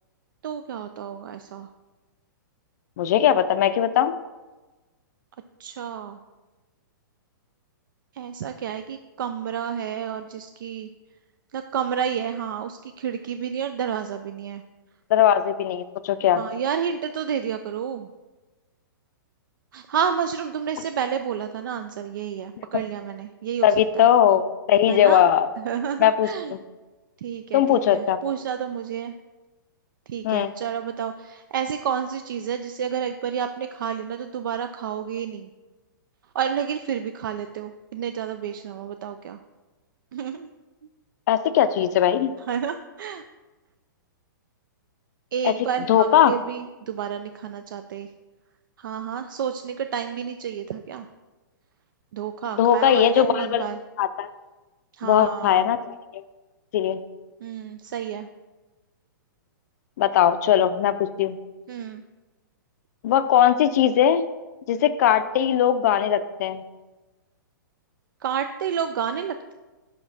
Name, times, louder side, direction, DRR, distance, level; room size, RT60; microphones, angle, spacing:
voice 1, 0.4-1.7 5.6-6.2 8.1-10.9 11.5-14.6 16.4-18.1 19.7-24.1 24.9-25.2 25.6-26.5 27.2-29.1 30.1-35.5 36.3-39.4 40.1-40.5 42.5-43.3 45.3-48.1 48.8-51.1 52.1-53.8 54.9-55.7 57.4-58.3 61.7-62.0 68.2-69.5, right 8 dB, 75° right, 8 dB, 0.4 m, -30 dB
voice 2, 3.0-4.1 15.1-16.4 22.7-22.8 23.6-25.5 26.0-26.3 27.5-28.2 30.2-30.5 41.3-42.3 45.4-45.5 45.9-46.3 52.6-53.6 54.0-54.3 55.0-56.2 56.7-57.0 60.0-61.4 63.0-64.3 64.7-66.6, left 10 dB, 55° left, 13 dB, 0.4 m, -19 dB
5.7 x 4.9 x 4.1 m, 1.2 s
hypercardioid pair, 145°, 11 cm